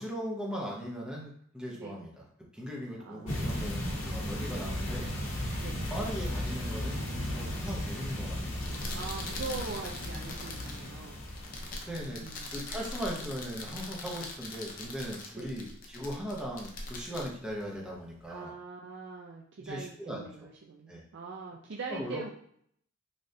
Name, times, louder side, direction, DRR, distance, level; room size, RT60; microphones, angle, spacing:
voice 1, 0.0-2.3 2.5-5.1 5.9-7.0 7.3-8.6 11.7-12.2 12.5-18.5 19.6-20.5 20.9-21.0 21.9-22.2, equal, 5° right, -3 dB, 0.7 m, -39 dB
voice 2, 3.0-3.3 4.5-4.7 5.6-5.8 8.9-11.2 12.2-12.4 15.4-15.5 18.3-22.3, right 4 dB, 60° right, -1 dB, 0.4 m, -42 dB
sound 1, 3.3-12.3, left 1 dB, 90° left, 0.7 m, -35 dB
sound 2, 8.5-18.3, left 2 dB, 45° left, 0.5 m, -42 dB
3.3 x 2.5 x 2.6 m, 0.64 s
head